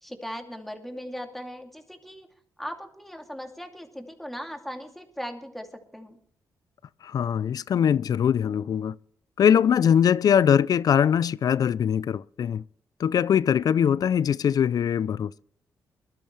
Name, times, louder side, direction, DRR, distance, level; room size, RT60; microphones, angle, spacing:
voice 1, 0.0-2.3 2.6-6.2, equal, ahead, 2.6 m, -38 dB
voice 2, 7.0-9.0 9.4-12.6 13.0-15.4, left 8 dB, 60° left, 0.4 m, -22 dB
21.5 x 12.5 x 3.2 m
cardioid pair, 85°, 7 cm